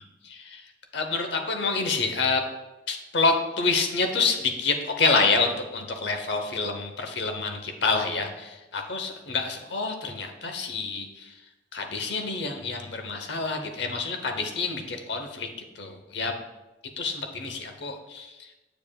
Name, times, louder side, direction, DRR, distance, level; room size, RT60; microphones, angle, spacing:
voice 1, 0.2-0.6 0.9-2.4 2.9-11.3 11.7-15.5 15.8-16.3 17.0-18.3, left 4 dB, 65° left, 5 dB, 0.8 m, -27 dB
7.5 x 6.9 x 2.3 m, 1.1 s
head